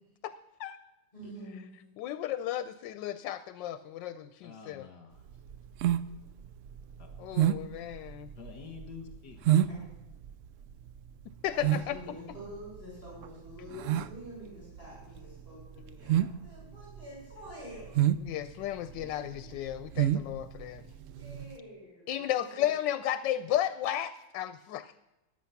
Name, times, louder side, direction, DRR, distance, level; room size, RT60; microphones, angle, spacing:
voice 1, 1.1-1.7 9.7-9.8 11.5-18.1 18.9-19.5 21.1-22.7, equal, 30° left, -5 dB, 6.4 m, -47 dB
voice 2, 2.0-4.9 7.2-8.3 11.4-12.2 18.2-20.9 22.1-24.9, left 12 dB, 90° left, 13 dB, 1.3 m, -34 dB
voice 3, 4.4-5.2 7.0-7.1 8.4-9.8, left 6 dB, 65° left, 3 dB, 2.1 m, -48 dB
sound 1, 5.2-21.5, right 11 dB, 80° right, 0.7 m, -30 dB
14.5 x 10.5 x 5.8 m, 1.0 s
omnidirectional pair, 1.9 m